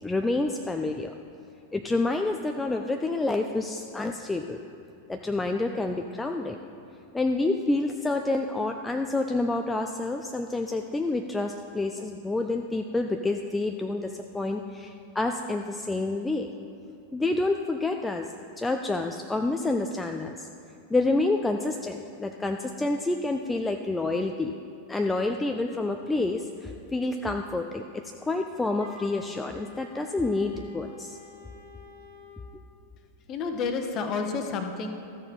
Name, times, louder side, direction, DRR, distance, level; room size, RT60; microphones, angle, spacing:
voice 1, 0.0-1.1 1.7-4.6 5.1-6.6 7.1-16.5 17.1-18.3 18.6-20.5 20.9-24.6 24.9-27.8 28.2-31.2, left 2 dB, 10° left, 4 dB, 0.4 m, -28 dB
Wind instrument woodwind instrument, 28.8-32.4, left 5 dB, 65° right, 1.8 m, -48 dB
voice 2, 33.3-34.9, left 5 dB, 35° left, 5 dB, 1.0 m, -30 dB
13.5 x 6.6 x 4.2 m, 2.7 s
figure-of-eight pair, 90°, 0 cm